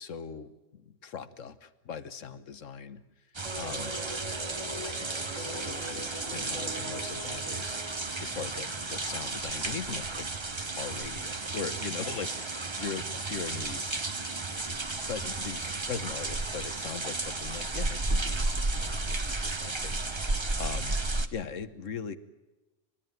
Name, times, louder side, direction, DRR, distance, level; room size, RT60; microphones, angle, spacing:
voice 1, 0.0-3.0 3.6-4.0 4.8-10.3 10.6-14.0 14.6-21.0 21.3-22.2, left 6 dB, 90° left, 12 dB, 1.5 m, -40 dB
sound 1, 3.3-21.3, right 3 dB, 25° right, 1.0 m, -33 dB
sound 2, 3.4-8.6, right 1 dB, 80° right, 4.8 m, -42 dB
29.5 x 13.0 x 9.3 m, 1.1 s
omnidirectional pair, 1.3 m